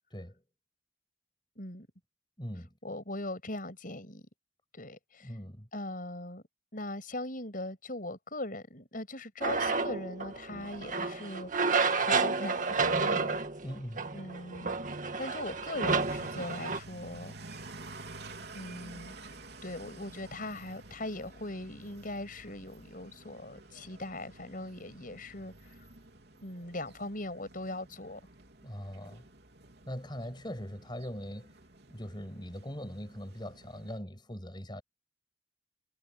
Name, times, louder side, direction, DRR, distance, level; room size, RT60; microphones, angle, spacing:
voice 1, 0.1-0.4 2.4-2.7 5.2-5.7 13.6-14.1 28.6-29.3 29.9-31.5 31.9-34.8, equal, 25° left, 6.4 m, -41 dB
voice 2, 1.6-1.9 2.8-4.3 4.7-5.3 5.7-6.4 6.7-13.4 14.1-14.7 15.2-17.3 18.5-19.3 19.6-25.8 26.4-28.2, left 1 dB, 45° left, 6.8 m, -40 dB
sound 1, 9.4-16.8, right 4 dB, 40° right, 1.9 m, -30 dB
sound 2, 16.0-34.0, right 2 dB, 60° right, 3.5 m, -51 dB
head